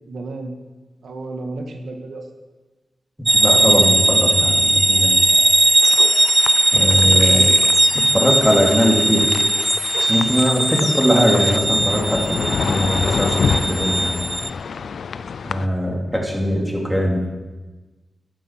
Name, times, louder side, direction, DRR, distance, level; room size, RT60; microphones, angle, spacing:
voice 1, 0.1-0.5 1.0-2.2 7.0-7.6, right 2 dB, 85° right, 3 dB, 1.5 m, -31 dB
voice 2, 3.3-5.2 6.7-7.4 8.1-9.3 10.1-14.2 15.4-17.2, equal, ahead, -1 dB, 2.6 m, -20 dB
sound 1, 3.3-14.5, right 2 dB, 20° right, 0.5 m, -18 dB
sound 2, 5.8-15.7, left 6 dB, 80° left, 0.4 m, -27 dB
11.5 x 9.3 x 5.8 m, 1.2 s
wide cardioid pair, 85°, 0 cm